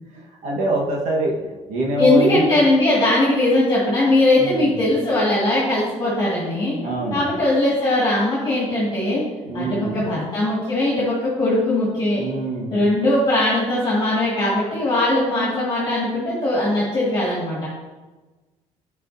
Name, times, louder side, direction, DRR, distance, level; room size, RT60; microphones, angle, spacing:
voice 1, 0.1-2.5 4.4-4.8 6.8-7.2 9.4-10.1 12.2-12.8, right 1 dB, 80° right, -1 dB, 1.4 m, -25 dB
voice 2, 2.0-6.8 7.1-9.2 9.5-12.2 12.7-17.7, left 1 dB, 35° left, -7 dB, 1.8 m, -20 dB
8.1 x 4.9 x 2.7 m, 1.2 s
cardioid pair, 135°, 12 cm